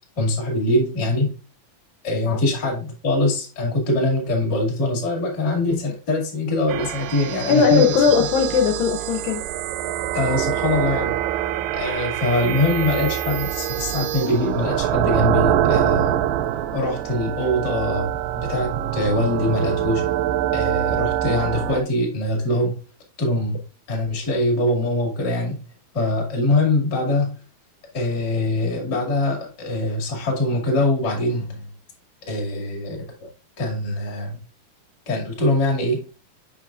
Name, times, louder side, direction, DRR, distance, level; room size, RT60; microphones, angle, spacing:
voice 1, 0.2-1.3 2.0-8.0 10.1-11.1 11.7-16.2 16.7-18.1 18.3-20.0 20.5-22.7 23.2-23.6 23.9-25.6 25.9-27.3 27.9-31.7 32.3-33.3 33.6-34.4 35.1-36.2, left 2 dB, 35° left, 2.1 m, -23 dB
sound 1, 6.7-21.8, right 11 dB, 80° right, 2.0 m, -24 dB
voice 2, 7.5-9.4, left 6 dB, 80° left, 2.4 m, -18 dB
7.4 x 5.6 x 2.4 m
omnidirectional pair, 4.4 m